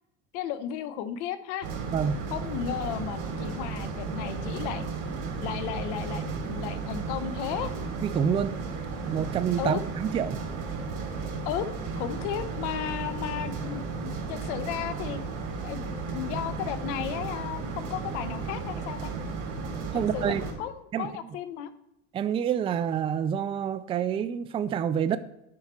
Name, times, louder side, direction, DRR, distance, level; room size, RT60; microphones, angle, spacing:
voice 1, 0.3-1.7 2.3-4.8 5.4-7.7 9.6-9.8 11.4-11.7 12.0-15.2 15.6-19.1 19.9-21.7, left 10 dB, 80° left, 13 dB, 0.9 m, -34 dB
sound 1, 1.6-20.5, right 4 dB, 60° right, 3.1 m, -34 dB
voice 2, 8.0-8.5 9.1-10.4 19.9-20.4 20.9-21.1 22.1-25.2, right 8 dB, 15° right, 12 dB, 0.3 m, -27 dB
9.8 x 5.7 x 4.3 m, 0.85 s
supercardioid pair, 125°, 35 cm